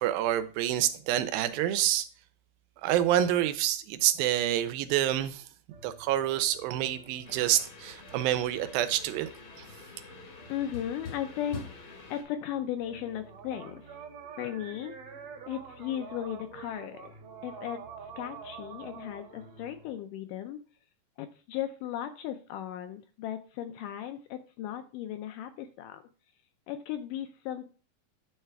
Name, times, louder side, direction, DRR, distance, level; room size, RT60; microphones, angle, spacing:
voice 1, 0.0-2.1 2.8-5.4 5.8-9.3 9.6-9.7, right 12 dB, 90° right, 2.4 m, -27 dB
sound 1, 5.7-20.0, right 5 dB, 65° right, 1.7 m, -48 dB
sound 2, 7.2-12.2, left 4 dB, 60° left, 1.3 m, -46 dB
voice 2, 10.5-14.0 14.4-15.0 15.5-17.1 17.4-17.8 18.2-20.6 21.2-26.0 26.7-27.7, left 11 dB, 80° left, 2.0 m, -36 dB
9.5 x 3.3 x 4.4 m
omnidirectional pair, 4.1 m